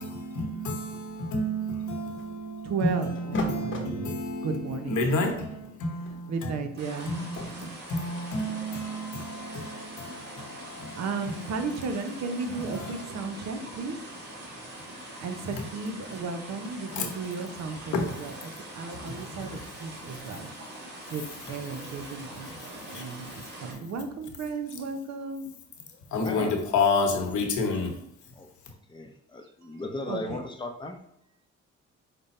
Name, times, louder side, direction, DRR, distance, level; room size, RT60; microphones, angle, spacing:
voice 1, 0.0-6.6 7.1-11.1 11.3-11.6 12.6-13.7 14.4-15.6 16.9-17.1 17.9-18.1 19.0-19.6 22.4-22.6 22.9-23.0 26.1-28.0, left 2 dB, 75° left, 1.0 m, -31 dB
sound 1, 1.6-2.5 3.1-4.0 4.7-4.9 5.2-7.4, left 3 dB, 40° left, 0.9 m, -38 dB
voice 2, 2.6-4.2 4.4-5.3 6.3-7.2 7.6-7.7 9.4-10.0 10.9-14.0 15.2-20.5 21.1-25.5 29.4-29.8 30.1-30.4, right 4 dB, 60° right, 0.7 m, -35 dB
sound 2, 6.8-23.7, right 1 dB, 35° right, 1.5 m, -43 dB
voice 3, 26.2-26.5 28.4-28.5 28.9-31.0, left 2 dB, 15° left, 0.6 m, -36 dB
5.2 x 2.2 x 4.1 m
cardioid pair, 90°, 30 cm